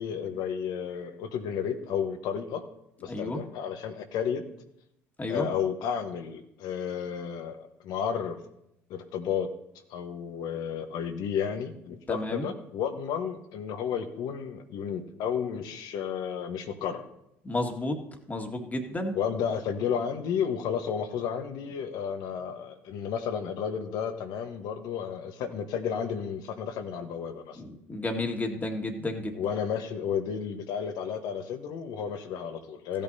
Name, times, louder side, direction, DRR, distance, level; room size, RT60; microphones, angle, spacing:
voice 1, 0.0-2.6 3.0-4.4 5.3-8.4 8.9-9.5 9.9-17.0 19.1-27.6 29.3-33.0, left 7 dB, 65° left, 7 dB, 1.2 m, -32 dB
voice 2, 3.1-3.4 5.2-5.5 12.1-12.5 17.4-18.0 18.3-19.2 27.6-29.3, left 2 dB, 20° left, 4 dB, 1.9 m, -31 dB
15.5 x 8.8 x 2.8 m, 0.79 s
hypercardioid pair, 60°, 8 cm